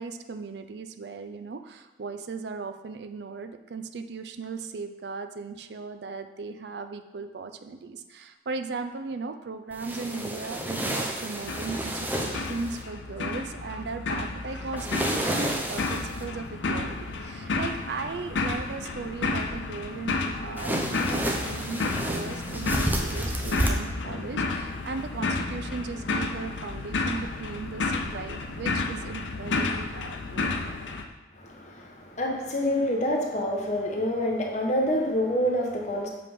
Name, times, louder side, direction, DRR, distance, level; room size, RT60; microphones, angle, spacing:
voice 1, 0.0-30.5, right 4 dB, 70° right, 8 dB, 0.4 m, -37 dB
sound 1, 9.7-12.8 14.8-16.2 20.6-23.7, right 1 dB, 10° right, 0.6 m, -30 dB
sound 2, 11.4-31.0, left 3 dB, 90° left, 0.7 m, -31 dB
voice 2, 31.3-36.1, equal, 40° left, 0 dB, 1.1 m, -27 dB
7.5 x 3.6 x 5.2 m, 1.2 s
head